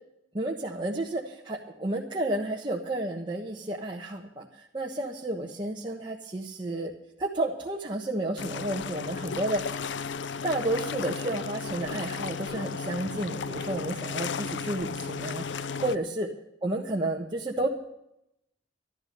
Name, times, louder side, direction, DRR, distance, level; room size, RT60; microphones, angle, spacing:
voice 1, 0.3-6.9 7.2-9.8 10.4-16.3 16.6-17.7, right 1 dB, 25° right, -2 dB, 1.3 m, -31 dB
sound 1, 8.4-16.0, left 5 dB, 75° left, 0.6 m, -34 dB
12.5 x 12.0 x 6.7 m, 0.80 s
head